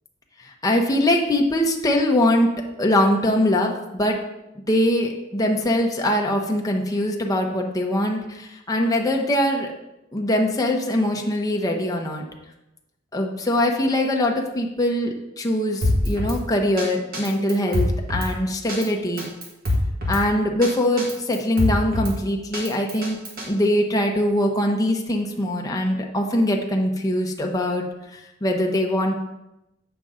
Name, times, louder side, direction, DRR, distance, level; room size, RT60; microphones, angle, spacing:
voice 1, 0.6-2.5 2.8-4.2 4.7-9.7 10.1-12.2 13.1-19.3 20.1-23.2 23.5-27.8 28.1-29.2, left 1 dB, 20° left, 0 dB, 0.8 m, -22 dB
Drum kit, 15.8-16.4 16.8-16.9 17.1-18.3 18.7-18.9 19.2-20.2 20.6-20.7 21.0-22.1 22.5-23.5, left 1 dB, 50° right, 1.6 m, -24 dB
8.2 x 5.3 x 3.7 m, 0.93 s
head